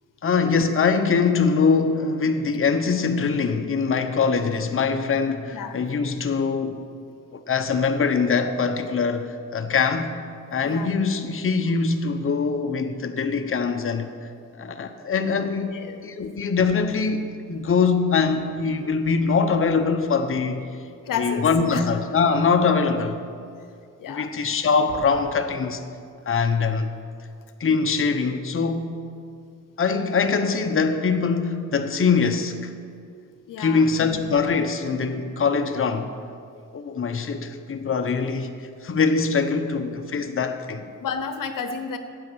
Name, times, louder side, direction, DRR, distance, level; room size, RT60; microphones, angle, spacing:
voice 1, 0.2-6.8 7.3-10.1 10.5-14.1 14.5-15.7 16.0-20.6 21.2-23.2 24.1-25.8 26.3-26.9 27.6-29.0 29.8-32.7 33.6-36.1 36.7-38.5 38.8-40.9, left 5 dB, 40° left, 1.0 m, -23 dB
voice 2, 10.6-10.9 15.7-16.0 21.0-21.8 24.0-24.3 33.5-33.9 41.0-42.0, left 6 dB, 80° left, 0.9 m, -31 dB
sound 1, 24.9-25.4, right 2 dB, 80° right, 2.0 m, -41 dB
12.5 x 8.6 x 6.3 m
cardioid pair, 70°, 32 cm